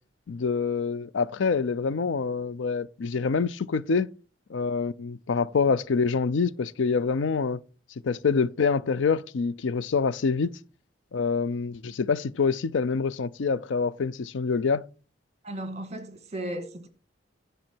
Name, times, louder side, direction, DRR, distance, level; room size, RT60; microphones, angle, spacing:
voice 1, 0.3-4.1 4.5-7.6 8.0-10.5 11.1-14.8, left 5 dB, 90° left, 0.5 m, -26 dB
voice 2, 15.4-16.9, right 1 dB, 40° right, 1.6 m, -35 dB
10.5 x 6.8 x 4.4 m
head